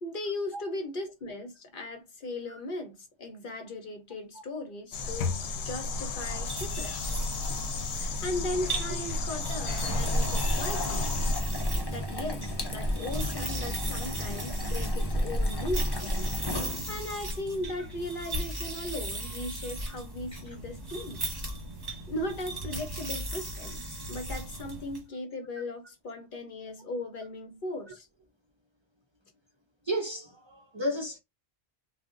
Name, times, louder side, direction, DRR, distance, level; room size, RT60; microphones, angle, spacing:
voice 1, 0.0-5.4 5.6-7.2 7.9-11.1 11.9-16.1 16.6-21.2 21.8-28.1, left 1 dB, 55° left, 0.9 m, -37 dB
sound 1, 4.9-11.4, left 3 dB, 85° left, 0.8 m, -33 dB
sound 2, 6.2-25.0, right 1 dB, 25° right, 0.8 m, -37 dB
sound 3, 9.5-17.1, equal, 30° left, 0.5 m, -32 dB
voice 2, 29.9-31.2, equal, 40° right, 0.4 m, -33 dB
2.4 x 2.0 x 3.5 m
omnidirectional pair, 1.1 m